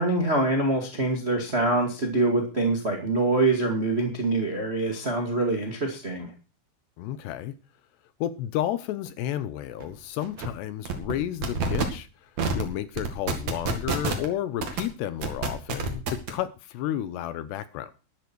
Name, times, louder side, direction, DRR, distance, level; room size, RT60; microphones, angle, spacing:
voice 1, 0.0-6.3, right 2 dB, 75° right, 0.5 m, -25 dB
voice 2, 7.0-7.6 8.2-17.9, left 12 dB, 75° left, 2.7 m, -32 dB
sound 1, 9.8-9.9 10.2-10.5 10.9-11.1 11.4-11.8 12.4-12.6 13.0-14.3 14.6-14.8 15.2-16.3, right 4 dB, 45° right, 2.7 m, -27 dB
13.0 x 12.5 x 4.6 m
omnidirectional pair, 5.4 m